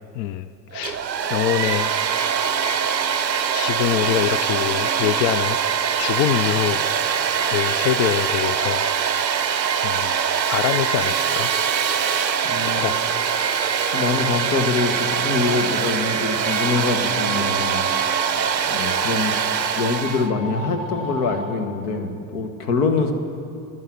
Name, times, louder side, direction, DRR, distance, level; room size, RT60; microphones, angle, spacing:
voice 1, 0.1-1.0 1.3-1.9 3.5-5.6 6.0-6.8 7.5-8.8 9.8-10.1 10.5-11.5 12.6-13.0, left 12 dB, 40° left, 15 dB, 0.4 m, -24 dB
Domestic sounds home sounds, 0.7-20.3, right 7 dB, 90° right, 0.6 m, -23 dB
voice 2, 12.5-12.9 13.9-17.8 18.7-19.3 19.7-23.1, left 4 dB, 65° left, 7 dB, 1.6 m, -24 dB
sound 1, 15.7-21.4, left 2 dB, 85° left, 4.4 m, -36 dB
13.0 x 9.5 x 10.0 m, 2.5 s
figure-of-eight pair, 65°, 50 cm